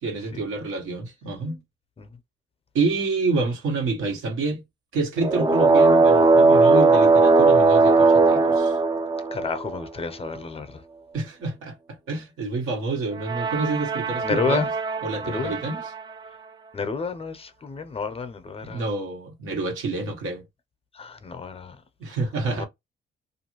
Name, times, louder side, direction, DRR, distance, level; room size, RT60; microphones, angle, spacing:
voice 1, 0.0-1.6 2.7-4.6 4.9-8.8 11.1-14.7 15.0-15.9 18.6-20.4 22.0-22.7, right 3 dB, 85° right, 1.3 m, -28 dB
sound 1, 5.2-9.8 13.1-16.0, right 3 dB, 20° right, 0.4 m, -19 dB
voice 2, 9.3-10.7 14.2-14.7 15.2-15.6 16.7-18.8 21.0-21.8 22.5-22.6, left 4 dB, 30° left, 0.6 m, -30 dB
2.6 x 2.4 x 2.9 m
cardioid pair, 90°, 20 cm